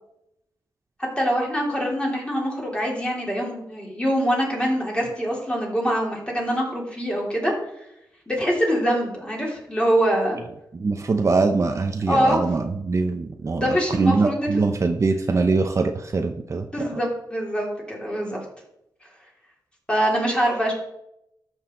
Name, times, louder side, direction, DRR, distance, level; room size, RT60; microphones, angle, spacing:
voice 1, 1.0-7.5 8.3-10.4 12.1-12.4 13.5-14.5 16.7-18.4 19.9-20.7, equal, 15° left, -2 dB, 3.3 m, -24 dB
voice 2, 10.7-17.0, right 3 dB, 40° right, 5 dB, 0.8 m, -23 dB
13.0 x 6.4 x 3.9 m, 0.79 s
wide cardioid pair, 100°, 8 cm